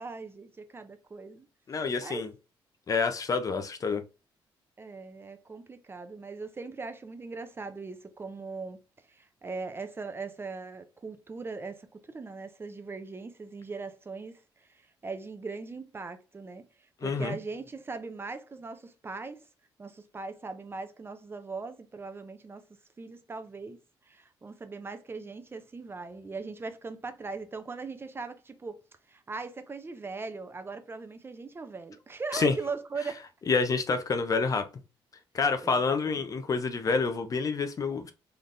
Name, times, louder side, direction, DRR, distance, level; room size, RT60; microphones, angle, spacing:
voice 1, 0.0-1.5 2.0-2.3 4.8-8.8 9.1-14.4 15.0-16.6 17.0-19.4 19.8-22.6 23.0-23.8 24.1-28.8 29.1-33.2 35.6-36.3, right 4 dB, 25° right, 0.5 m, -40 dB
voice 2, 1.7-2.3 2.9-4.0 17.0-17.4 32.3-32.5 33.5-34.7 35.3-38.1, left 4 dB, 40° left, 0.6 m, -28 dB
3.9 x 3.3 x 2.6 m
cardioid pair, 115°, 9 cm